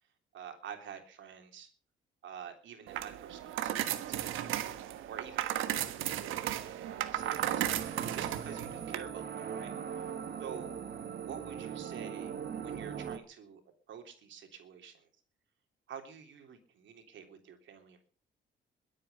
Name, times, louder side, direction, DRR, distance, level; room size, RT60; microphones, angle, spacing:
voice 1, 0.3-1.7 2.2-4.8 5.1-7.9 8.1-10.1 10.4-10.8 11.1-12.3 12.6-13.6 13.9-15.1 15.9-18.1, right 7 dB, 70° right, 5 dB, 3.4 m, -48 dB
sound 1, 2.9-9.0, right 12 dB, 90° right, 1.3 m, -35 dB
sound 2, 7.2-13.2, right 7 dB, 55° right, 1.7 m, -40 dB
22.0 x 8.8 x 5.5 m, 0.43 s
cardioid pair, 90°, 20 cm